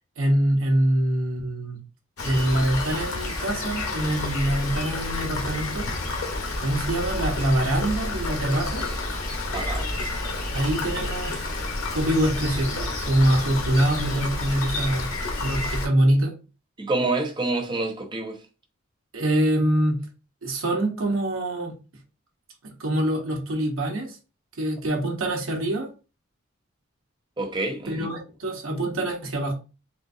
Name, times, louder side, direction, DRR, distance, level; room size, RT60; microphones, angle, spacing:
voice 1, 0.2-1.8 2.2-5.9 6.6-8.8 10.5-11.5 11.9-15.1 15.4-16.3 19.1-20.0 20.4-21.7 22.6-24.2 24.6-25.9 27.9-29.5, right 1 dB, 80° right, 1.0 m, -24 dB
Rain, 2.2-15.9, left 2 dB, 90° left, 0.8 m, -29 dB
voice 2, 9.5-9.9 16.8-18.4 27.4-28.1, right 2 dB, 20° right, 0.5 m, -27 dB
3.8 x 2.4 x 2.6 m
head